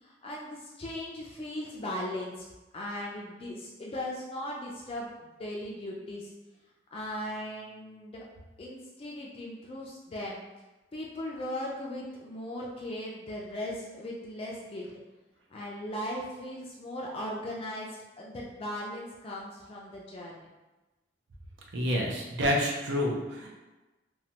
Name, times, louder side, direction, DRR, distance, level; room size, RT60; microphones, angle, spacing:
voice 1, 0.0-2.3 2.7-6.3 6.9-8.2 8.6-10.4 10.9-14.9 15.5-17.9 18.2-20.5, left 1 dB, 30° left, -3 dB, 0.3 m, -38 dB
voice 2, 21.7-23.5, equal, 75° right, -1 dB, 0.6 m, -28 dB
3.1 x 2.2 x 2.8 m, 1.1 s
head